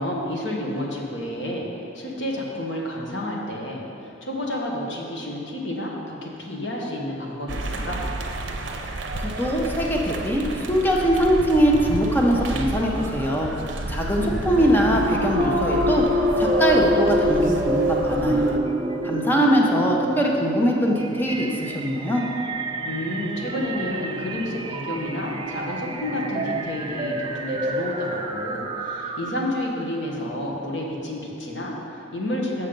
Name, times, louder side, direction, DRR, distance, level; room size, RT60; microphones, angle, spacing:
voice 1, 0.0-1.7 1.9-8.0 14.2-14.9 22.8-32.7, left 1 dB, 65° left, -2 dB, 1.3 m, -30 dB
sound 1, 7.5-18.6, right 2 dB, 70° right, 0.6 m, -31 dB
voice 2, 9.2-13.5 13.9-18.5 19.0-22.2, equal, 10° left, -1 dB, 0.8 m, -22 dB
sound 2, 15.1-29.6, right 1 dB, 25° right, 0.4 m, -27 dB
7.2 x 6.4 x 5.2 m, 2.8 s
head